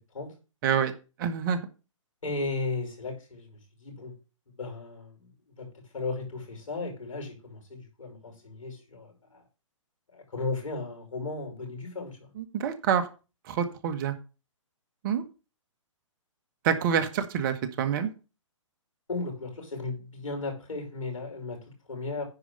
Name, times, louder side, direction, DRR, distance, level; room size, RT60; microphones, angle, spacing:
voice 1, 0.6-0.9 1.2-1.7 12.4-13.1 13.4-14.2 15.0-15.2 16.6-18.1, right 8 dB, 40° right, 10 dB, 1.4 m, -27 dB
voice 2, 2.2-4.1 4.5-9.4 10.1-12.3 19.1-22.2, left 3 dB, 80° left, 2 dB, 5.6 m, -36 dB
10.0 x 4.8 x 6.7 m, 0.32 s
hypercardioid pair, 130°, 17 cm